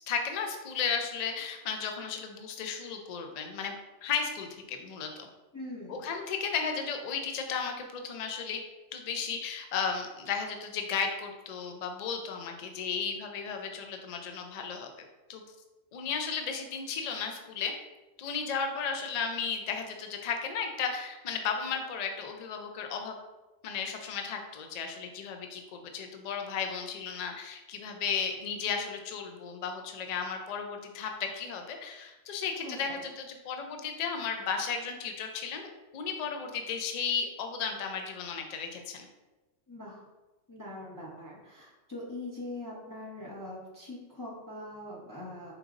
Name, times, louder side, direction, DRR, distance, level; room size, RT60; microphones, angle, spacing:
voice 1, 0.1-3.7 4.0-5.3 5.9-8.6 8.9-14.9 15.3-15.4 15.9-17.7 18.2-23.2 23.6-39.1, left 6 dB, 60° left, 4 dB, 0.4 m, -34 dB
voice 2, 5.5-6.0 32.6-32.8 39.7-40.0 40.5-45.5, left 1 dB, 20° left, -5 dB, 0.7 m, -42 dB
4.6 x 3.9 x 2.5 m, 1.1 s
omnidirectional pair, 1.3 m